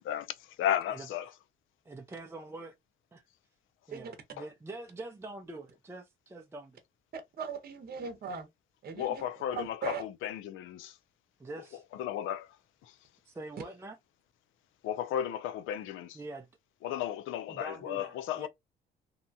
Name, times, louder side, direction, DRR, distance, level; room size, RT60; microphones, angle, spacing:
voice 1, 0.6-1.3 9.0-10.9 12.0-12.5 12.8-12.9 14.8-16.2 16.8-18.5, left 10 dB, 85° left, 0.5 m, -34 dB
voice 2, 1.8-2.8 3.1-3.2 3.9-6.8 11.4-11.8 13.3-14.0 16.1-16.5 17.5-18.5, right 2 dB, 15° right, 0.5 m, -44 dB
voice 3, 7.1-8.5 8.8-9.2 9.5-10.0, right 5 dB, 50° right, 0.8 m, -39 dB
2.8 x 2.2 x 2.6 m
cardioid pair, 90°, 20 cm